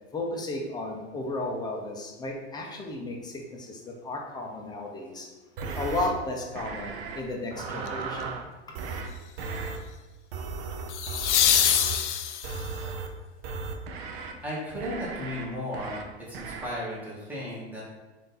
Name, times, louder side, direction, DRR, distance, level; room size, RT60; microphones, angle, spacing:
voice 1, 0.1-5.3 5.7-8.3, left 2 dB, 10° left, 0 dB, 0.6 m, -34 dB
sound 1, 5.6-6.1 6.6-7.2 7.5-8.4 8.7-9.1 9.4-9.8 10.3-12.0 12.4-13.1 13.4-14.3 14.8-15.4 15.7-16.0 16.3-16.7, right 4 dB, 55° right, 0.6 m, -36 dB
sound 2, 7.9-8.2 10.9-12.8 15.7-15.8, left 9 dB, 70° left, 0.5 m, -24 dB
voice 2, 14.4-16.0 16.3-17.8, left 1 dB, 5° right, -7 dB, 1.4 m, -35 dB
3.6 x 2.8 x 4.0 m, 1.2 s
hypercardioid pair, 105°, 36 cm